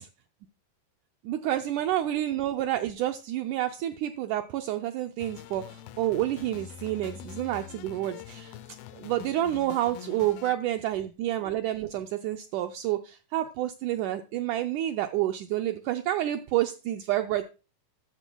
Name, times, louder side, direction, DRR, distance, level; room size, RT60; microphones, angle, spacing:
voice 1, 1.2-8.5 8.9-17.5, right 13 dB, 85° right, 7 dB, 1.8 m, -29 dB
sound 1, 5.2-10.5, left 12 dB, 85° left, 2.5 m, -45 dB
13.5 x 11.0 x 2.3 m, 0.33 s
omnidirectional pair, 4.3 m